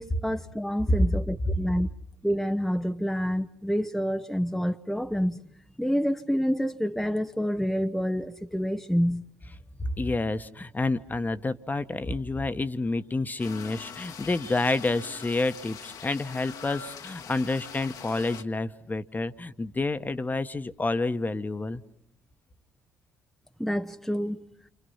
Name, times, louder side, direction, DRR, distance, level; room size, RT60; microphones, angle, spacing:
voice 1, 0.0-1.9 2.2-5.4 5.8-9.2 23.6-24.4, equal, ahead, 0.9 m, -28 dB
voice 2, 9.8-21.8, left 2 dB, 25° left, 1.3 m, -29 dB
sound 1, 13.4-18.4, left 7 dB, 65° left, 1.6 m, -43 dB
28.5 x 26.5 x 5.7 m
hypercardioid pair, 50°, 7 cm